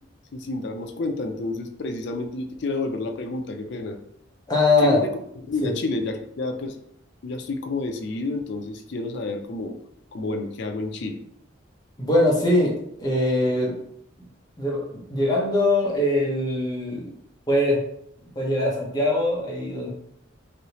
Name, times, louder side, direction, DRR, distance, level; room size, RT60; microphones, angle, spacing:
voice 1, 0.3-4.0 4.8-5.1 5.5-6.8 7.2-9.8 10.1-11.2, left 3 dB, 60° left, 6 dB, 0.4 m, -29 dB
voice 2, 4.5-5.0 5.6-5.7 12.0-13.7 14.6-17.1 17.5-17.8 18.4-19.9, left 1 dB, 20° left, -3 dB, 0.9 m, -22 dB
3.2 x 2.7 x 2.8 m, 0.70 s
head